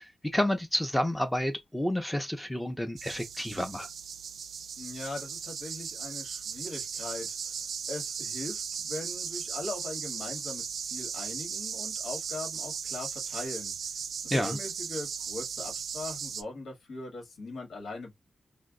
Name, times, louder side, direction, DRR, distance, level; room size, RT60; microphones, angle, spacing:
voice 1, 0.0-3.9 14.3-14.6, left 1 dB, 5° left, 0.4 m, -30 dB
sound 1, 3.0-16.4, right 7 dB, 80° right, 0.3 m, -37 dB
voice 2, 4.8-13.7 14.2-18.1, left 2 dB, 80° left, 1.4 m, -40 dB
2.5 x 2.1 x 3.6 m
wide cardioid pair, 180°, 0 cm